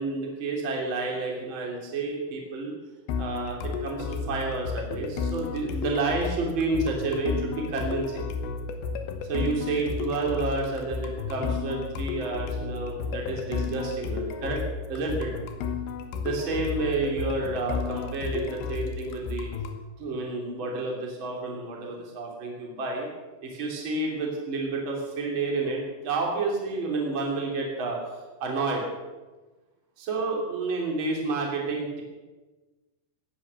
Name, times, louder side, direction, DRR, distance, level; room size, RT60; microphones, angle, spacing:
voice 1, 0.0-2.7 3.2-8.2 9.3-14.6 14.9-15.3 16.2-19.5 20.0-23.1 23.4-28.0 28.4-28.8 30.0-32.0, right 3 dB, 30° right, -1 dB, 3.3 m, -30 dB
sound 1, 3.1-19.8, left 5 dB, 85° left, 3.4 m, -32 dB
18.0 x 10.5 x 6.6 m, 1.2 s
omnidirectional pair, 4.9 m